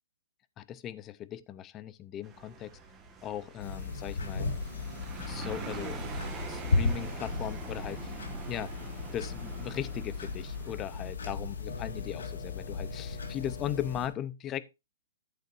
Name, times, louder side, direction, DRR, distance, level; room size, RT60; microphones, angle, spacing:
voice 1, 0.6-2.8 3.2-4.5 5.3-6.0 6.5-8.1 8.5-8.7 9.1-14.7, left 11 dB, 20° left, 0.5 m, -38 dB
sound 1, 2.2-11.1, right 5 dB, 15° right, 1.4 m, -45 dB
sound 2, 3.6-14.1, left 3 dB, 90° left, 2.1 m, -35 dB
10.5 x 8.2 x 2.5 m
hypercardioid pair, 145°, 0 cm